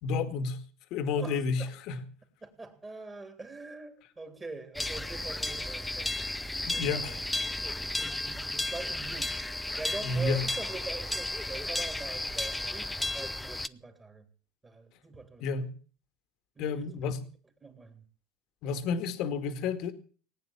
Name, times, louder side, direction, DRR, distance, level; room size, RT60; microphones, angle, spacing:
voice 1, 0.0-0.6 0.9-2.0 6.6-7.2 10.0-10.4 15.4-15.7 16.6-17.2 18.6-19.9, left 4 dB, 60° left, 2.1 m, -31 dB
voice 2, 1.2-1.7 2.4-6.2 6.7-7.2 7.6-9.4 9.8-14.3 14.6-15.4 16.5-17.0 17.6-18.0, right 3 dB, 20° right, 3.4 m, -43 dB
sound 1, 4.7-13.7, left 2 dB, 5° left, 0.7 m, -33 dB
19.0 x 9.3 x 7.3 m
supercardioid pair, 115°, 0 cm